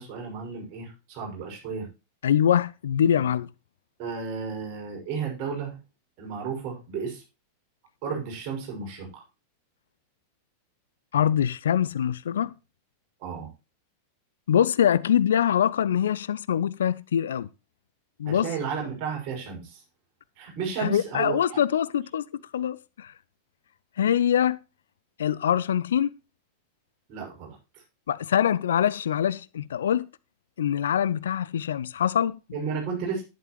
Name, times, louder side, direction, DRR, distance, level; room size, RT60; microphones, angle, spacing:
voice 1, 0.0-1.9 4.0-5.8 6.2-7.2 8.0-9.2 13.2-13.5 18.3-19.8 20.4-21.4 27.1-27.8 32.5-33.2, right 5 dB, 40° right, 6.3 m, -33 dB
voice 2, 2.2-3.5 11.1-12.5 14.5-17.5 18.2-18.5 20.8-23.1 24.0-24.6 25.2-26.1 28.1-30.1 30.6-32.4, left 9 dB, 65° left, 0.5 m, -24 dB
11.5 x 10.5 x 3.1 m
figure-of-eight pair, 90°, 0 cm